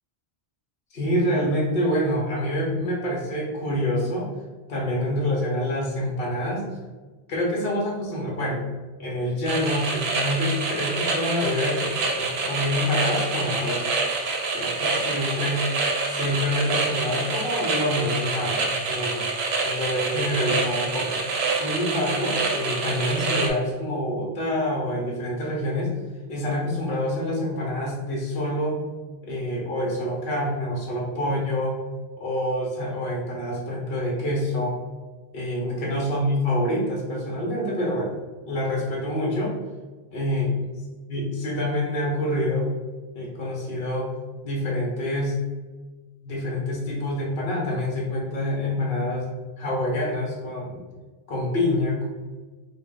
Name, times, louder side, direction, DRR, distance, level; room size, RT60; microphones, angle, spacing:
voice 1, 0.9-4.3 4.7-6.7 7.3-8.6 9.0-13.9 14.5-15.7 16.1-18.6 18.9-19.3 19.6-21.2 21.5-25.9 26.3-28.8 29.2-31.8 32.2-34.8 35.3-38.1 38.5-39.5 40.1-40.8 41.1-42.7 43.1-44.1 44.4-45.4 46.2-50.8 51.3-52.1, left 1 dB, 65° left, -3 dB, 1.0 m, -26 dB
sound 1, 9.5-23.5, right 3 dB, 80° right, 0.9 m, -27 dB
3.8 x 2.0 x 3.7 m, 1.3 s
omnidirectional pair, 1.1 m